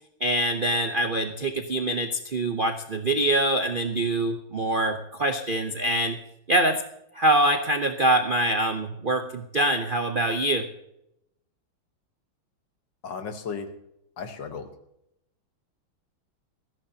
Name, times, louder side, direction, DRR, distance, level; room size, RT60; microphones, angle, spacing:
voice 1, 0.2-6.2 6.5-6.8 7.1-10.7, right 1 dB, 80° right, 6 dB, 0.4 m, -24 dB
voice 2, 13.0-13.7 14.2-14.7, left 5 dB, 60° left, 7 dB, 1.8 m, -34 dB
19.5 x 15.0 x 2.8 m, 0.82 s
omnidirectional pair, 2.3 m